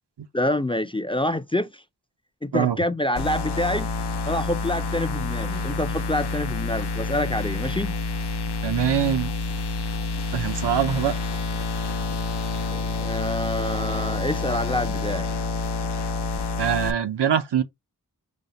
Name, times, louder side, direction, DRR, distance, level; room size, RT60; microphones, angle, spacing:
voice 1, 0.3-1.8 2.4-3.9 4.3-8.0 12.7-15.3, left 1 dB, 15° left, 0.4 m, -27 dB
sound 1, 3.2-16.9, left 3 dB, 80° left, 0.6 m, -28 dB
voice 2, 8.6-9.3 10.3-11.2 16.6-17.6, right 8 dB, 90° right, 0.6 m, -23 dB
5.2 x 2.1 x 4.0 m
wide cardioid pair, 45°, 40 cm